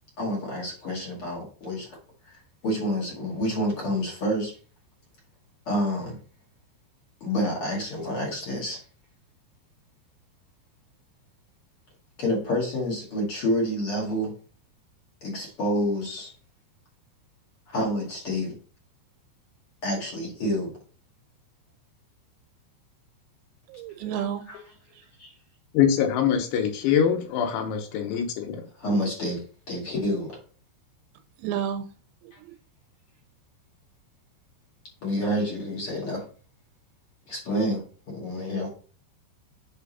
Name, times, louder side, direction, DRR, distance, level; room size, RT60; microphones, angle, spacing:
voice 1, 0.2-2.0 2.3-4.6 5.7-6.2 7.2-8.8 12.2-14.3 15.2-16.3 17.7-18.6 19.8-20.7 24.0-24.2 24.5-24.6 25.2-25.3 28.8-30.4 32.3-32.4 35.0-36.3 37.3-38.7, equal, 45° left, -3 dB, 2.0 m, -28 dB
voice 2, 23.7-24.5 31.4-31.8 32.2-32.5, right 9 dB, 80° right, 8 dB, 3.0 m, -31 dB
voice 3, 25.7-28.6, left 8 dB, 85° left, 4 dB, 3.5 m, -23 dB
8.2 x 3.7 x 4.1 m, 0.40 s
omnidirectional pair, 5.3 m